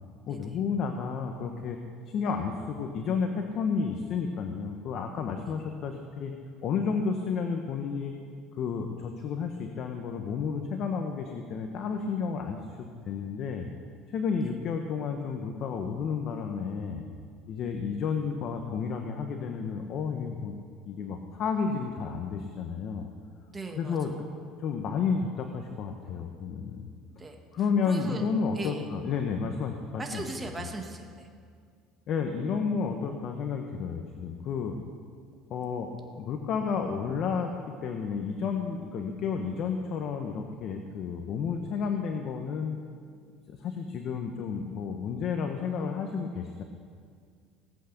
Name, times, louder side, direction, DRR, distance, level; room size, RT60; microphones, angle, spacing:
voice 1, 0.3-1.8 2.1-6.3 6.6-8.1 8.6-13.7 14.1-17.0 17.5-20.6 20.9-23.1 23.7-24.2 24.6-26.9 27.5-30.2 30.6-30.7 32.1-34.8 35.5-37.5 37.8-42.8 43.5-46.6, left 5 dB, 50° left, 4 dB, 1.2 m, -31 dB
voice 2, 23.5-24.1 27.2-27.3 27.9-28.2 28.5-28.9 30.0-31.3, right 2 dB, 15° right, 3 dB, 1.8 m, -38 dB
18.5 x 8.4 x 6.7 m, 2.1 s
cardioid pair, 125°, 0 cm